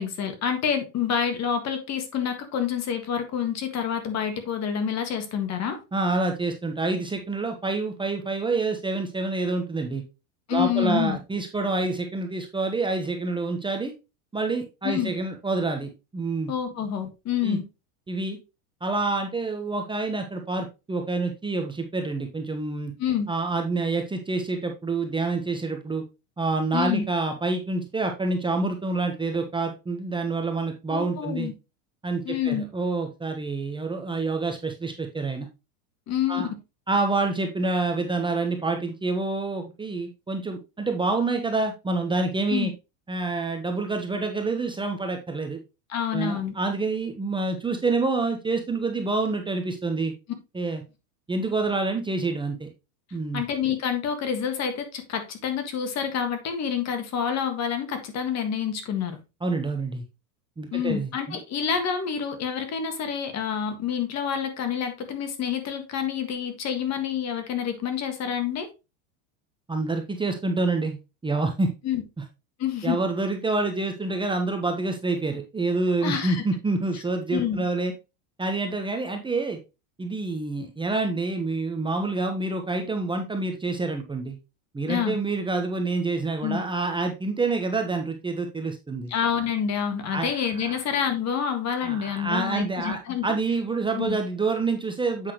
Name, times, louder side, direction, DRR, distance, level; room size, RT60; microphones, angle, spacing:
voice 1, 0.0-5.8 10.5-11.2 14.8-15.1 16.5-17.6 23.0-23.3 26.7-27.0 30.9-31.5 32.3-32.6 36.1-36.4 42.5-42.7 45.9-46.5 53.3-59.2 60.7-68.7 71.8-72.0 72.6-73.0 76.0-76.4 77.3-77.6 84.9-85.2 86.4-86.6 89.1-93.3 94.0-94.2, left 8 dB, 35° left, 1.7 m, -27 dB
voice 2, 5.9-10.0 10.5-13.9 14.3-16.5 17.4-17.6 18.1-18.4 18.8-22.9 23.3-26.0 26.4-31.5 32.0-35.5 36.3-36.5 36.9-42.7 43.1-45.6 46.1-50.1 50.5-50.8 51.3-52.7 53.1-53.4 59.4-60.0 60.6-61.4 69.7-71.0 71.2-71.7 72.8-77.9 78.4-79.6 80.0-84.4 84.7-89.1 90.1-90.8 91.8-95.3, right 3 dB, 10° right, 1.1 m, -27 dB
8.0 x 5.8 x 3.1 m
supercardioid pair, 125°, 43 cm